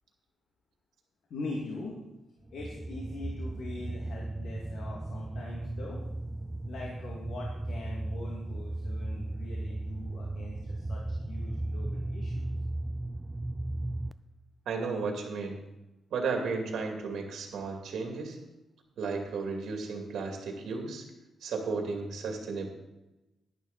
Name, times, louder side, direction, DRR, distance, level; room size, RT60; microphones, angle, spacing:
voice 1, 1.3-1.9 2.5-6.0 6.7-12.5, left 2 dB, 70° left, -2 dB, 2.2 m, -42 dB
sound 1, 2.5-14.1, right 2 dB, 10° right, 0.4 m, -36 dB
voice 2, 14.7-15.6 16.1-18.4 19.0-21.0 21.4-22.7, right 4 dB, 80° right, 2 dB, 2.4 m, -34 dB
11.0 x 11.0 x 4.1 m, 0.98 s
wide cardioid pair, 160°, 0 cm